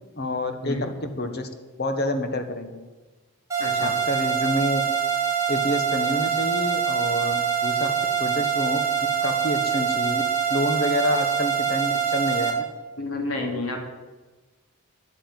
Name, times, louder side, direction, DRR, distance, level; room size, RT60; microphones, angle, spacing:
voice 1, 0.2-0.8 1.0-1.5 1.8-2.8 3.8-4.8 5.5-7.9 8.2-8.8 9.2-10.2 10.5-12.6, left 1 dB, 45° left, 7 dB, 1.4 m, -28 dB
sound 1, 3.5-12.5, right 7 dB, 15° right, 4.3 m, -24 dB
voice 2, 3.6-3.9 13.0-13.8, left 2 dB, 65° left, 2 dB, 2.7 m, -30 dB
10.5 x 9.4 x 9.1 m, 1.2 s
head